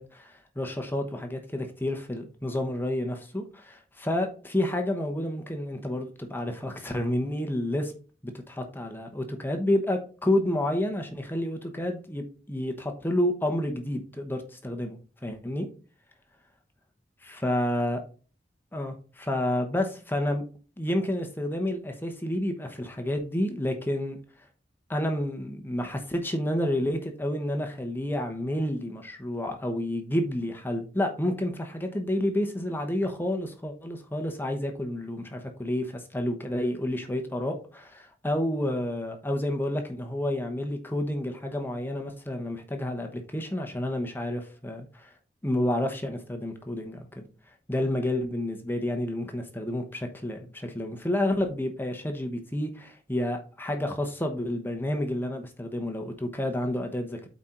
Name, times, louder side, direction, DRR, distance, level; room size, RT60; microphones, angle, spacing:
voice 1, 0.0-7.9 8.2-15.7 17.2-18.0 18.7-20.4 20.8-24.2 24.9-45.1 45.4-47.3 47.7-57.3, left 1 dB, 10° left, 4 dB, 0.9 m, -30 dB
8.3 x 4.4 x 3.8 m, 0.36 s
head